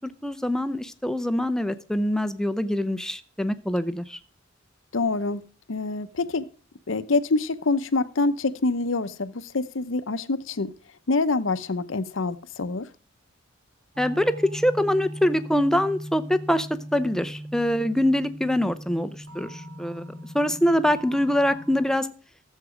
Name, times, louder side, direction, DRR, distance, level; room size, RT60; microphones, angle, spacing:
voice 1, 0.0-4.2 14.0-19.1 19.3-20.0 20.3-22.1, left 1 dB, 5° left, 0.6 m, -24 dB
voice 2, 4.9-5.4 5.7-6.5 6.9-10.7 11.1-12.9, left 3 dB, 70° left, 0.7 m, -26 dB
sound 1, 14.0-21.9, equal, 80° right, 3.3 m, -39 dB
14.0 x 7.5 x 5.0 m
head